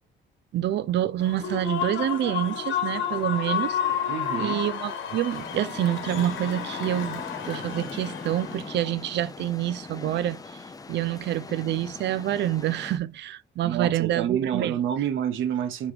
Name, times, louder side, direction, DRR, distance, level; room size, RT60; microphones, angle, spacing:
voice 1, 0.5-3.8 4.4-10.6 10.9-14.8, right 12 dB, 60° right, 0.4 m, -27 dB
Human voice / Cheering / Applause, 1.2-8.8, left 8 dB, 75° left, 1.1 m, -31 dB
voice 2, 4.1-4.6 13.6-15.9, right 9 dB, 80° right, 0.8 m, -28 dB
sound 1, 5.3-13.0, left 4 dB, 20° left, 0.5 m, -41 dB
4.8 x 3.1 x 3.3 m
cardioid pair, 90°, 20 cm